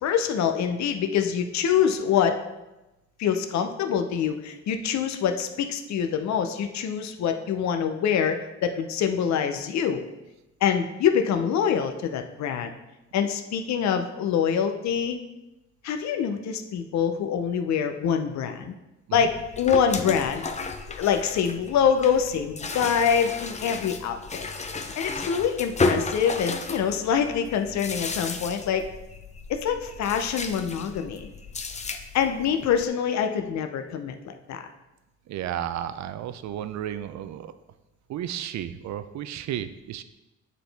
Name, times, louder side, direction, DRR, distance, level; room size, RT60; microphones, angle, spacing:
voice 1, 0.0-2.4 3.2-10.0 10.6-12.7 13.1-15.2 15.8-18.8 19.1-20.4 20.9-24.4 25.0-28.9 29.5-31.3 32.1-34.7, left 7 dB, 65° left, 6 dB, 0.6 m, -25 dB
sound 1, 19.1-32.9, left 3 dB, 25° left, 0.6 m, -33 dB
voice 2, 35.3-37.5 38.1-40.0, right 11 dB, 65° right, 12 dB, 0.5 m, -33 dB
9.2 x 4.0 x 3.4 m, 1.0 s
cardioid pair, 90°, 30 cm